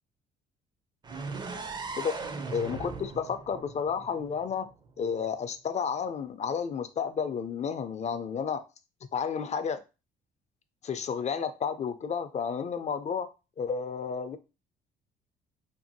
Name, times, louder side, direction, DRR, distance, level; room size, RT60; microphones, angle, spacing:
sound 1, 1.0-4.9, right 4 dB, 25° right, 0.4 m, -39 dB
voice 1, 2.5-4.6 5.0-8.6 9.1-9.8 10.8-13.3 13.6-14.4, left 6 dB, 35° left, 0.4 m, -31 dB
2.6 x 2.5 x 2.7 m
supercardioid pair, 65°, 19 cm